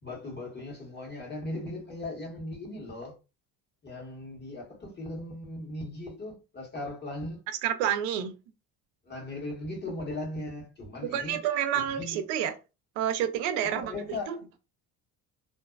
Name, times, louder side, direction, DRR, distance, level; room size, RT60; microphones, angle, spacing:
voice 1, 0.0-3.1 3.8-7.4 9.0-11.4 12.0-12.2 13.6-14.4, left 2 dB, 25° left, 1.3 m, -38 dB
voice 2, 7.6-8.3 11.1-12.5 13.0-14.4, right 10 dB, 85° right, 0.6 m, -29 dB
2.6 x 2.2 x 2.3 m
supercardioid pair, 90°, 39 cm